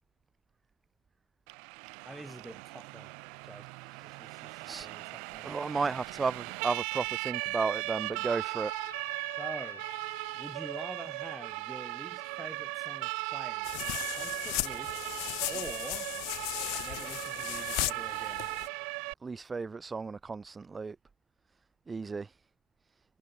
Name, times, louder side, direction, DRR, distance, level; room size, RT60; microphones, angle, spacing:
Siren, 1.5-19.1, right 34 dB, 60° right, 0.5 m, -38 dB
voice 1, 2.1-3.1 3.4-3.7 4.0-5.5 9.4-9.9 10.3-14.9 15.5-16.1 16.8-18.5, right 1 dB, 5° right, 5.3 m, -46 dB
voice 2, 5.4-8.7 19.2-21.0 21.9-22.3, right 4 dB, 25° right, 1.3 m, -34 dB
Trumpet, 8.6-12.9, left 4 dB, 85° left, 1.7 m, -51 dB
sound 1, 13.6-18.7, left 30 dB, 60° left, 1.4 m, -36 dB
figure-of-eight pair, 55°, 0 cm